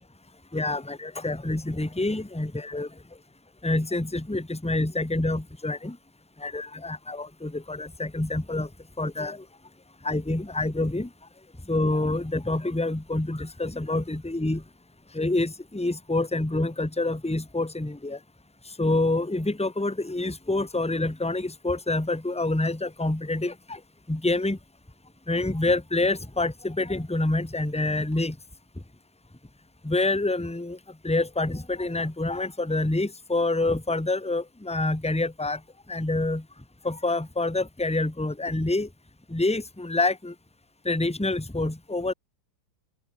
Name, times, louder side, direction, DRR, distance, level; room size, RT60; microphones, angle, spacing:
voice 1, 0.5-2.9 3.6-6.0 6.4-8.7 9.0-9.4 10.0-11.1 11.7-14.6 15.1-18.2 18.8-23.8 24.1-24.6 25.3-28.3 29.8-30.8 31.0-35.6 35.9-36.4 36.8-38.9 39.3-40.3 40.8-42.1, left 2 dB, 5° left, 0.6 m, -27 dB
open air
omnidirectional pair, 2.1 m